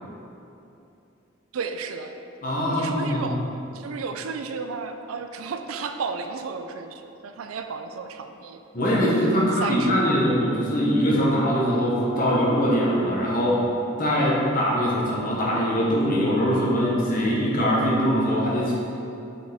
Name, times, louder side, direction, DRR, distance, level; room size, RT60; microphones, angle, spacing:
voice 1, 1.5-2.1 2.7-3.4 3.7-8.6 9.1-10.2, right 5 dB, 85° right, 7 dB, 0.4 m, -33 dB
voice 2, 2.4-3.3 8.7-13.7 14.0-18.7, equal, 40° left, -4 dB, 1.1 m, -22 dB
6.9 x 4.7 x 3.5 m, 2.8 s
head